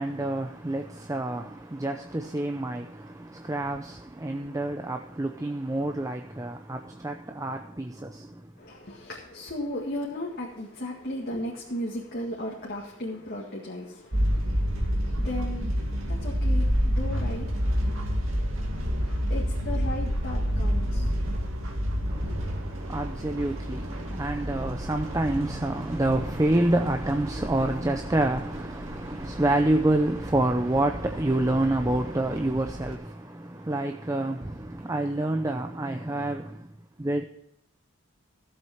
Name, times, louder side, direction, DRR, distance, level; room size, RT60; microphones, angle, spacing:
voice 1, 0.0-8.4 22.1-36.7 37.0-37.2, right 1 dB, 15° right, 0.6 m, -28 dB
voice 2, 8.6-21.1 22.2-22.4, left 1 dB, 50° left, 1.9 m, -36 dB
sound 1, 14.1-32.9, equal, 85° right, 2.4 m, -29 dB
14.0 x 7.8 x 5.8 m
head